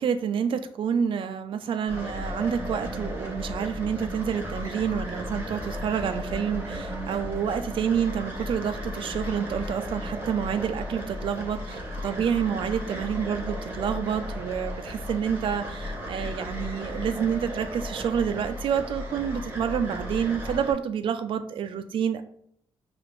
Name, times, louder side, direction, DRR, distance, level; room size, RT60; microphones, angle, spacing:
voice 1, 0.0-22.2, right 7 dB, 60° right, 8 dB, 0.4 m, -28 dB
sound 1, 1.9-20.7, equal, 20° right, 1.1 m, -35 dB
5.7 x 2.5 x 3.0 m, 0.67 s
cardioid pair, 105°, 10 cm